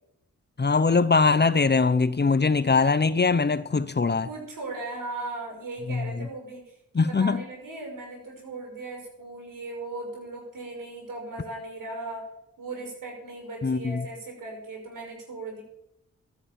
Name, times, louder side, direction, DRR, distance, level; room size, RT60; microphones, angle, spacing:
voice 1, 0.6-4.3 5.9-6.1 6.9-7.4 13.6-14.1, left 4 dB, 30° left, 0.9 m, -22 dB
voice 2, 4.2-12.2 12.6-15.6, right 2 dB, 75° right, 5.9 m, -38 dB
12.5 x 10.0 x 7.2 m
cardioid pair, 50°, 33 cm